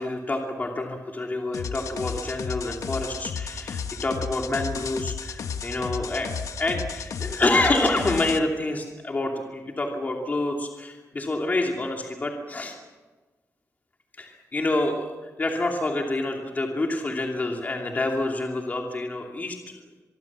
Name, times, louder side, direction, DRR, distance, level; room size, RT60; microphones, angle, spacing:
voice 1, 0.0-6.3 6.6-12.8 14.2-19.8, left 2 dB, 30° left, 1 dB, 2.7 m, -27 dB
sound 1, 1.5-8.4, left 6 dB, 80° left, 1.3 m, -33 dB
25.5 x 23.0 x 7.4 m, 1.3 s
wide cardioid pair, 130°, 6 cm